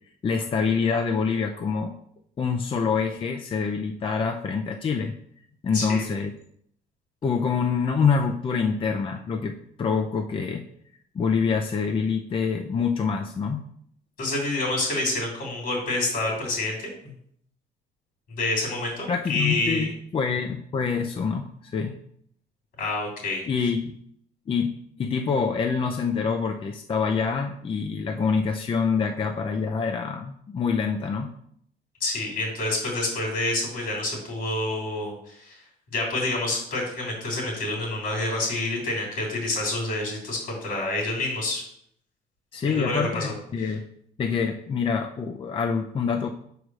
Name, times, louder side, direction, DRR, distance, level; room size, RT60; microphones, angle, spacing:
voice 1, 0.2-2.0 2.4-5.1 5.6-6.3 7.2-10.6 11.1-13.6 19.1-22.0 23.5-24.0 24.5-24.7 25.0-31.3 42.5-43.8 44.2-46.3, left 5 dB, 30° left, 4 dB, 0.6 m, -26 dB
voice 2, 14.2-17.1 18.4-19.9 22.8-23.4 32.0-35.6 35.9-41.6 42.7-43.7, left 2 dB, 65° left, -2 dB, 3.3 m, -28 dB
5.0 x 4.9 x 6.2 m, 0.67 s
cardioid pair, 110°, 17 cm